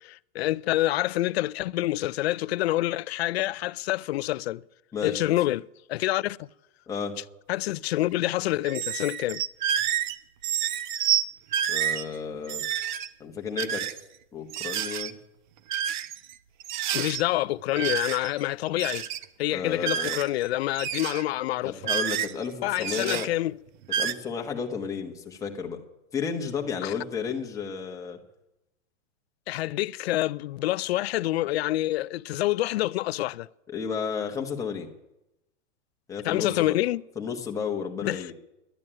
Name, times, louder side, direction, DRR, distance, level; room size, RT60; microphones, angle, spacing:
voice 1, 0.0-4.6 5.0-5.6 5.9-6.5 7.5-9.4 16.9-19.1 19.4-21.7 22.6-23.5 26.8-26.9 29.5-33.5 36.2-37.0 38.0-38.2, left 16 dB, 60° left, 0.5 m, -27 dB
voice 2, 4.9-5.4 6.9-7.2 11.7-12.6 13.2-14.0 14.3-15.1 19.5-20.2 21.6-23.3 24.0-25.8 26.1-28.2 33.7-34.9 36.1-36.8 37.2-38.3, left 6 dB, 10° left, 1.1 m, -32 dB
sound 1, 8.6-10.2 10.4-11.2 11.5-12.0 12.4-13.1 13.6-14.0 14.5-15.1 15.7-16.3 16.6-17.2 17.7-18.4 18.7-19.2 19.8-20.5 20.7-21.2 21.8-22.4 22.8-23.3 23.8-24.1, right 10 dB, 40° right, 0.6 m, -29 dB
11.0 x 10.5 x 8.8 m
supercardioid pair, 160°, 36 cm